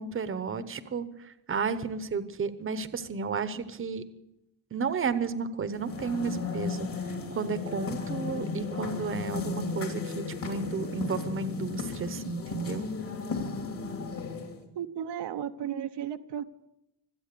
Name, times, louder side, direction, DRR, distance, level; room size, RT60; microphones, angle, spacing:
voice 1, 0.0-4.0 4.7-6.9 7.3-12.9, right 5 dB, 30° right, 12 dB, 0.9 m, -32 dB
sound 1, 5.7-14.6, left 4 dB, 55° left, 3.1 m, -35 dB
voice 2, 14.7-16.4, right 9 dB, 75° right, 8 dB, 0.9 m, -34 dB
25.0 x 8.4 x 6.8 m, 0.89 s
wide cardioid pair, 150°, 41 cm